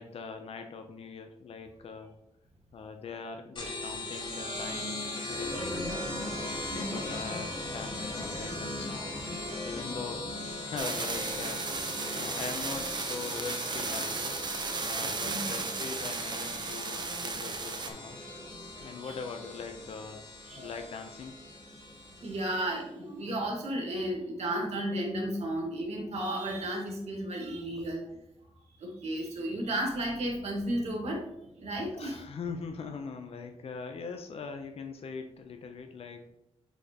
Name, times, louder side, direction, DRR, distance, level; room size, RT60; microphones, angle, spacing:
voice 1, 0.0-2.2 2.7-5.9 6.4-9.3 9.6-10.3 10.6-11.8 12.1-14.4 14.9-18.2 18.8-20.2 20.6-21.4 27.7-27.8 31.9-36.3, left 5 dB, 65° left, 6 dB, 0.6 m, -41 dB
sound 1, 3.6-22.7, left 1 dB, 45° left, 1.6 m, -39 dB
voice 2, 6.7-7.0 15.2-15.4 19.0-19.1 20.5-20.7 21.7-28.1 28.8-31.2 31.6-32.2, right 1 dB, 80° right, 0 dB, 1.8 m, -33 dB
sound 2, 10.8-17.9, right 4 dB, 40° right, 0.7 m, -35 dB
8.1 x 4.3 x 2.9 m, 0.86 s
wide cardioid pair, 160°, 11 cm